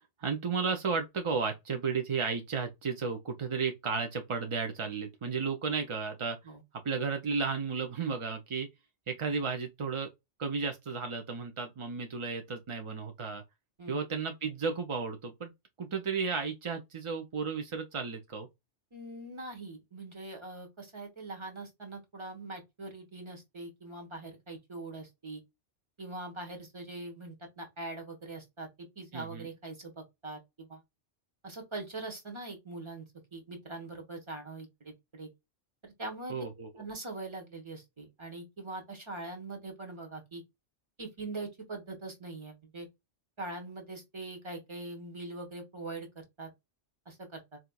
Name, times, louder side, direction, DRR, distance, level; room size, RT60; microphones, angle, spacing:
voice 1, 0.2-6.4 6.8-8.7 9.1-10.1 10.4-13.4 13.9-15.5 15.8-18.5 29.1-29.5 36.3-36.8, right 5 dB, 50° right, 0.3 m, -33 dB
voice 2, 18.9-25.4 26.0-28.7 29.0-30.8 31.4-33.0 33.3-35.3 35.8-36.4 36.8-40.4 41.0-42.9 43.4-46.5 47.1-47.6, right 2 dB, 25° right, 1.1 m, -42 dB
4.2 x 2.4 x 2.2 m
omnidirectional pair, 1.2 m